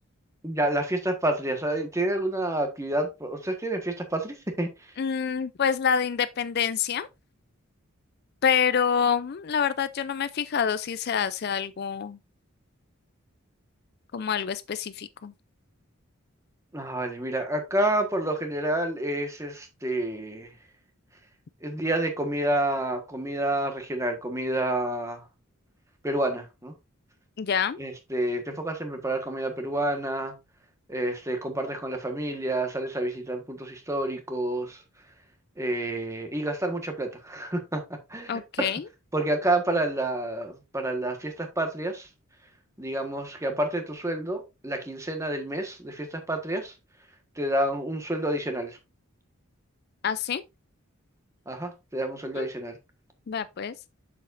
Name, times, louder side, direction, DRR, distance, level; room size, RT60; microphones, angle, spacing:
voice 1, 0.4-4.7 16.7-20.5 21.6-25.2 26.0-26.7 27.8-30.3 30.9-34.8 35.6-37.8 38.1-38.7 39.1-42.1 42.8-46.7 47.4-48.8 51.5-52.8, right 1 dB, 15° right, 1.4 m, -29 dB
voice 2, 5.0-7.1 8.4-12.2 14.1-15.3 27.4-27.8 38.3-38.9 50.0-50.4 52.3-52.5 53.3-53.7, left 7 dB, 50° left, 0.4 m, -27 dB
7.5 x 7.1 x 2.6 m
head